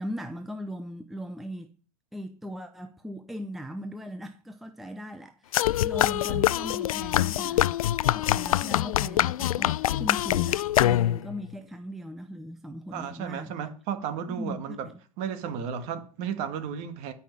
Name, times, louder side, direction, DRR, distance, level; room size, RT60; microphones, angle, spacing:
voice 1, 0.0-1.7 2.1-13.5 14.3-14.9, equal, ahead, 0.6 m, -39 dB
sound 1, 5.5-11.3, left 13 dB, 80° left, 0.5 m, -25 dB
voice 2, 12.9-14.9 15.2-17.1, right 8 dB, 40° right, 2.1 m, -33 dB
13.5 x 5.9 x 9.4 m
supercardioid pair, 150°, 18 cm